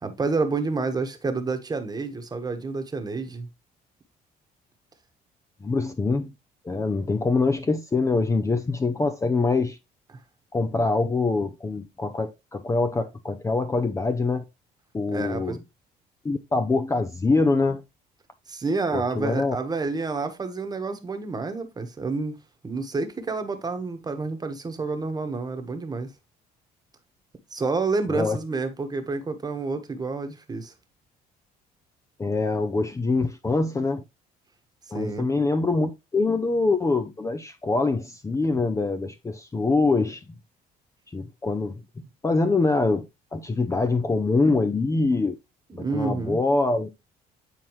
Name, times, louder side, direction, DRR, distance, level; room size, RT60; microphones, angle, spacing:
voice 1, 0.0-3.5 15.1-15.6 18.5-22.4 22.6-26.1 27.5-30.7 34.9-35.3 45.7-46.4, right 3 dB, 25° right, 1.3 m, -29 dB
voice 2, 5.6-6.3 6.6-9.8 10.5-14.4 14.9-15.6 16.2-17.8 18.9-19.6 28.1-28.4 32.2-34.0 34.9-40.2 41.1-41.8 42.2-43.1 43.3-45.4 45.8-46.9, left 3 dB, 20° left, 0.6 m, -24 dB
9.1 x 4.3 x 3.1 m
cardioid pair, 110°, 17 cm